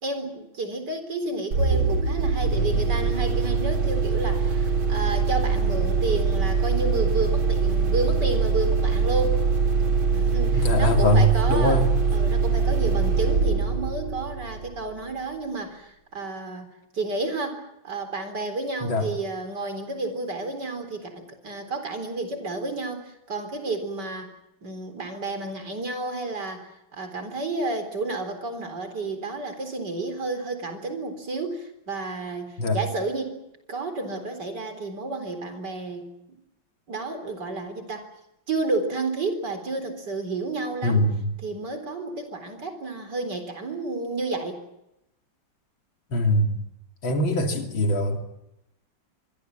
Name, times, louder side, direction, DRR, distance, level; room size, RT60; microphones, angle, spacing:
voice 1, 0.0-9.4 10.1-11.8 12.1-24.3 24.6-33.4 33.7-36.4 36.9-38.1 38.5-41.0 41.4-44.6, right 3 dB, 55° right, 8 dB, 4.6 m, -31 dB
sound 1, 1.5-15.0, right 5 dB, 90° right, 3.3 m, -23 dB
voice 2, 10.5-11.9 18.8-19.1 32.6-32.8 40.8-41.3 46.1-46.6 47.0-48.2, equal, 80° left, 4 dB, 3.6 m, -22 dB
25.5 x 23.0 x 7.5 m, 0.86 s
omnidirectional pair, 2.1 m